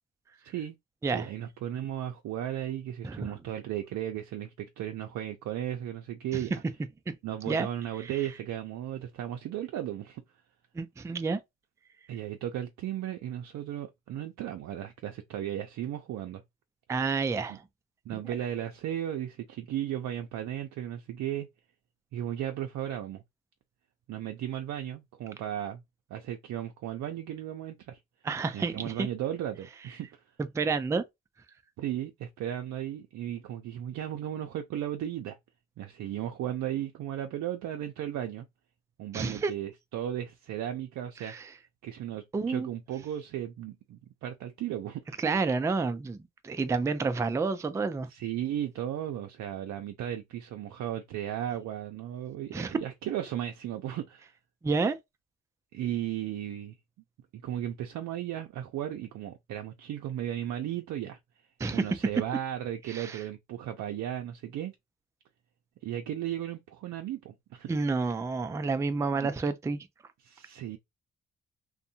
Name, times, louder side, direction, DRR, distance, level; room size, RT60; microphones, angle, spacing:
voice 1, 1.1-6.8 7.2-10.2 12.1-16.4 17.5-17.6 18.1-21.5 22.1-23.2 24.1-25.8 26.1-28.0 28.5-30.1 31.8-35.4 35.8-38.5 39.0-41.5 41.8-45.2 48.0-54.3 55.7-56.7 57.4-61.2 61.7-64.7 65.8-67.7 69.1-69.3 70.2-70.8, right 11 dB, 70° right, 0.5 m, -35 dB
voice 2, 10.8-11.4 16.9-17.6 28.2-29.1 30.5-31.0 39.1-39.5 41.2-41.4 42.3-42.7 45.2-48.1 52.5-52.8 54.6-54.9 61.6-61.9 62.9-63.2 67.7-69.9, right 4 dB, 10° right, 0.3 m, -29 dB
2.6 x 2.1 x 2.7 m
cardioid pair, 90°, 30 cm